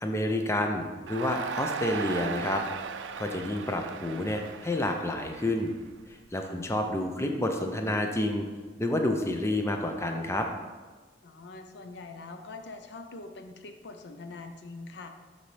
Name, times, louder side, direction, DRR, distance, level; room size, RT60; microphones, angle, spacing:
voice 1, 0.0-2.6 3.2-5.7 6.1-8.5 8.8-10.5, left 1 dB, 15° left, 4 dB, 0.5 m, -29 dB
Crowd, 1.1-6.3, right 6 dB, 85° right, 0.4 m, -37 dB
voice 2, 6.4-6.7 11.2-15.1, left 3 dB, 65° left, 6 dB, 0.6 m, -44 dB
11.0 x 4.0 x 3.3 m, 1.4 s
head